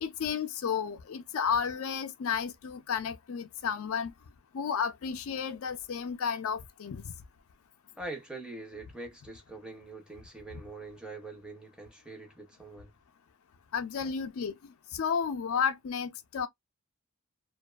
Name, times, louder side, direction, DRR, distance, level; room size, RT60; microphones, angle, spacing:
voice 1, 0.0-4.1 4.5-7.0 13.7-16.5, left 7 dB, 65° left, 0.4 m, -32 dB
voice 2, 8.0-12.9 14.0-14.1, right 2 dB, 5° right, 0.6 m, -44 dB
2.5 x 2.3 x 2.2 m
head